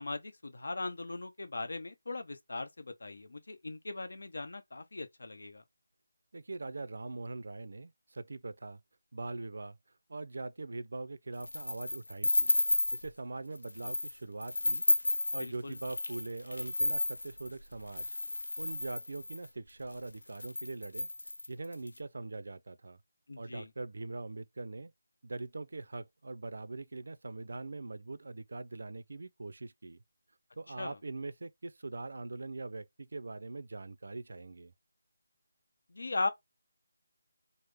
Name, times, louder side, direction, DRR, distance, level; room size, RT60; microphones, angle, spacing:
voice 1, 0.0-5.6 15.4-15.8 23.3-23.7 30.8-31.0 35.9-36.3, left 3 dB, 70° left, 0.8 m, -39 dB
voice 2, 6.3-8.8 9.1-9.8 10.1-12.6 12.9-14.9 15.3-18.1 18.6-21.1 21.5-23.0 23.4-24.9 25.2-30.0 30.6-34.7, right 3 dB, 65° right, 0.4 m, -42 dB
sound 1, 11.4-13.1 13.5-14.1 14.4-19.5 20.0-20.1 20.3-21.9, left 2 dB, 90° left, 0.5 m, -32 dB
3.5 x 2.0 x 3.3 m
figure-of-eight pair, 170°, 0 cm